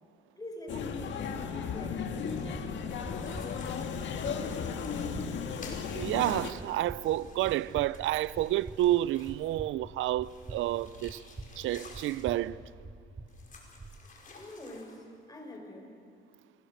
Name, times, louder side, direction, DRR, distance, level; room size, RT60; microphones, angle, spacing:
voice 1, 0.4-2.5 14.3-15.9, left 1 dB, 20° left, 5.6 m, -45 dB
sound 1, 0.7-6.5, left 6 dB, 70° left, 1.8 m, -35 dB
sound 2, 2.3-2.5 3.0-5.0 5.6-9.5 10.2-12.3 13.3-15.0, left 4 dB, 40° left, 5.1 m, -53 dB
sound 3, 2.5-14.0, right 2 dB, 25° right, 2.1 m, -46 dB
voice 2, 5.9-11.2 11.6-12.6, right 14 dB, 80° right, 0.5 m, -30 dB
29.0 x 20.5 x 6.5 m
cardioid pair, 90°, 20 cm